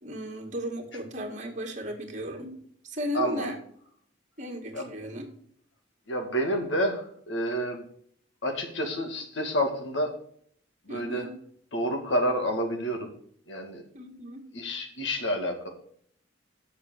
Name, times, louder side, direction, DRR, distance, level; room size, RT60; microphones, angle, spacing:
voice 1, 0.0-2.6 2.8-3.6 4.4-5.3 10.9-11.4 13.9-14.5, equal, 40° right, 2 dB, 2.1 m, -35 dB
voice 2, 3.1-3.5 4.7-4.9 6.1-7.8 8.4-10.1 10.9-11.3 11.7-13.1 13.5-13.8 14.5-15.7, equal, 65° left, 4 dB, 2.2 m, -29 dB
7.2 x 6.8 x 6.6 m, 0.63 s
head